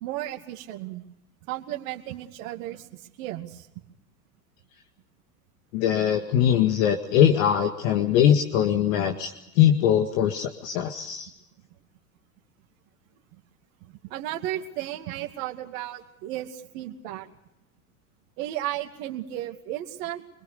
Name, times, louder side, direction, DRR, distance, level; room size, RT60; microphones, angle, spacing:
voice 1, 0.0-1.1 1.5-3.7 13.8-17.3 18.4-20.2, right 13 dB, 65° right, 4 dB, 2.4 m, -34 dB
voice 2, 5.7-11.3, left 9 dB, 65° left, 5 dB, 2.0 m, -22 dB
26.0 x 22.0 x 6.8 m, 0.82 s
hypercardioid pair, 85°, 44 cm